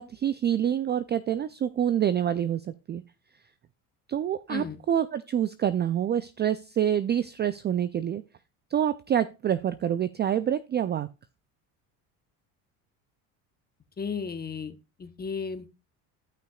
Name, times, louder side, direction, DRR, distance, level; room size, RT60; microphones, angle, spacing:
voice 1, 0.0-3.0 4.1-8.2 8.7-11.1, right 10 dB, 25° right, 13 dB, 0.3 m, -27 dB
voice 2, 4.5-4.8 14.0-15.7, left 5 dB, 20° left, 10 dB, 0.9 m, -34 dB
14.0 x 5.7 x 2.3 m, 0.27 s
supercardioid pair, 85°, 43 cm